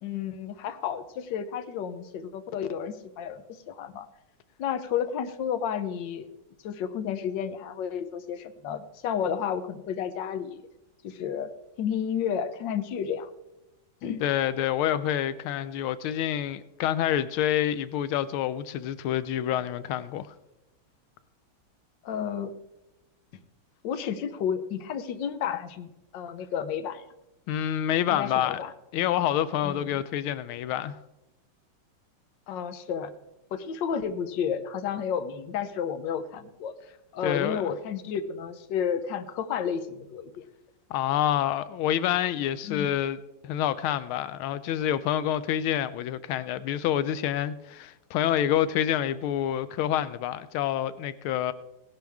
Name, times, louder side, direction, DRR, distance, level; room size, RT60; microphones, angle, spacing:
voice 1, 0.0-4.1 4.6-6.3 6.6-10.7 11.0-11.5 11.8-13.3 14.0-14.2 22.0-22.5 23.8-27.0 28.1-28.7 29.6-30.0 32.5-33.1 33.5-36.7 37.1-40.4 42.6-42.9, left 8 dB, 65° left, 1.5 m, -31 dB
voice 2, 14.2-20.3 27.5-28.6 28.9-30.9 37.2-37.7 40.9-43.2 43.4-51.5, left 11 dB, 90° left, 1.5 m, -27 dB
17.5 x 11.0 x 3.5 m
omnidirectional pair, 2.2 m